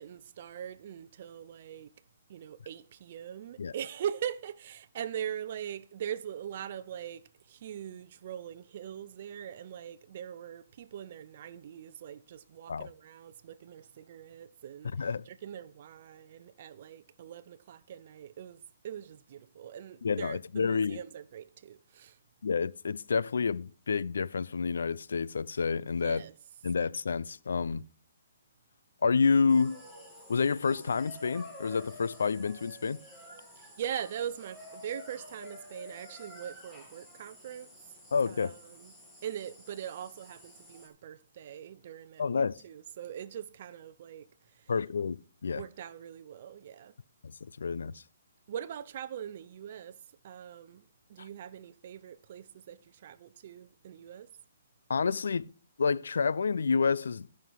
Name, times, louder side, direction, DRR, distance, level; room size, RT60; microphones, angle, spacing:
voice 1, 0.0-1.9 2.3-7.2 7.5-22.2 26.0-26.3 33.6-37.7 38.3-38.9 39.2-44.3 45.5-46.9 48.5-50.0 50.2-50.8 51.1-54.3, right 9 dB, 45° right, 0.6 m, -41 dB
voice 2, 14.8-15.2 20.0-21.0 22.4-26.3 26.6-27.8 29.0-29.8 30.3-33.0 38.1-38.5 42.2-42.6 44.7-45.6 47.2-48.0 51.2-51.3 54.9-55.5 55.8-57.3, left 5 dB, 80° left, 0.4 m, -29 dB
sound 1, 29.5-40.9, left 1 dB, 5° left, 2.4 m, -50 dB
13.5 x 5.7 x 4.7 m
hypercardioid pair, 155°, 0 cm